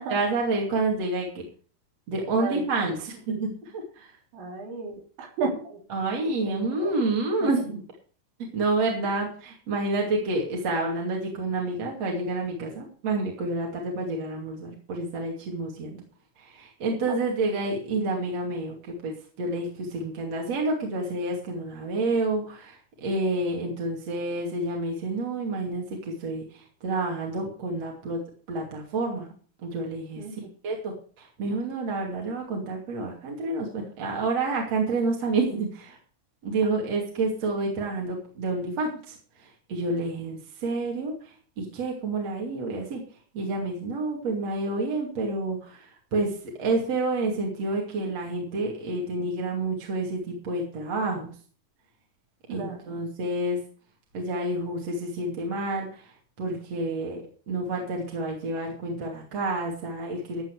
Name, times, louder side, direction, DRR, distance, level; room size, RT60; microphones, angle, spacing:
voice 1, 0.0-1.5 2.1-3.5 4.0-4.1 5.9-7.7 8.5-16.0 16.4-28.2 28.5-29.3 29.6-30.2 30.6-36.0 36.4-39.1 39.7-41.1 41.6-43.0 43.3-51.3 52.5-53.6 54.1-56.1 56.4-57.2 57.5-60.4, right 2 dB, 40° right, -1 dB, 3.2 m, -29 dB
voice 2, 2.4-2.7 4.3-5.8 6.2-6.5 6.8-7.0 7.4-7.5 17.1-17.2 30.2-30.3 52.5-53.0, right 3 dB, 80° right, 1 dB, 5.9 m, -33 dB
15.0 x 9.1 x 4.7 m, 0.44 s
omnidirectional pair, 5.2 m